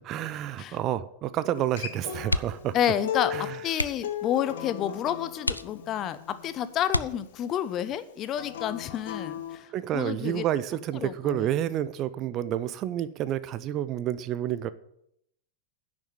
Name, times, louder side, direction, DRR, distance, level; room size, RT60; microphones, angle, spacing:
voice 1, 0.0-2.8 3.3-3.6 9.7-14.7, right 12 dB, 35° right, 0.6 m, -29 dB
Acoustic guitar, 1.6-6.8 8.3-9.6, left 10 dB, 60° left, 1.3 m, -37 dB
sound 1, 2.2-2.8 3.1-3.2 3.7-4.2 4.8-4.9 5.4-6.2 6.9-7.6 9.2-9.5 9.9-10.0, left 1 dB, 85° left, 0.4 m, -31 dB
voice 2, 2.7-10.4 11.0-11.5, left 10 dB, 30° left, 0.8 m, -30 dB
10.5 x 6.2 x 8.8 m
figure-of-eight pair, 90°, 0 cm